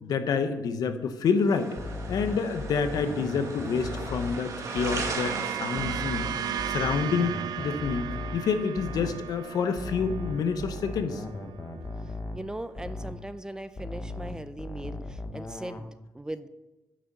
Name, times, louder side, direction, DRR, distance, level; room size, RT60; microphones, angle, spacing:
voice 1, 0.0-1.7 2.1-8.0 8.3-11.2, left 5 dB, 75° left, 9 dB, 0.9 m, -28 dB
sound 1, 1.5-6.7, right 3 dB, 55° right, 1.9 m, -38 dB
sound 2, 1.8-5.3 5.8-9.3 9.8-13.3 13.8-15.8, left 2 dB, 30° left, 1.0 m, -38 dB
sound 3, 4.0-12.5, right 9 dB, 75° right, 0.5 m, -36 dB
voice 2, 12.0-16.5, right 1 dB, 10° right, 13 dB, 0.4 m, -39 dB
9.5 x 6.4 x 6.0 m, 1.1 s
cardioid pair, 120°, 7 cm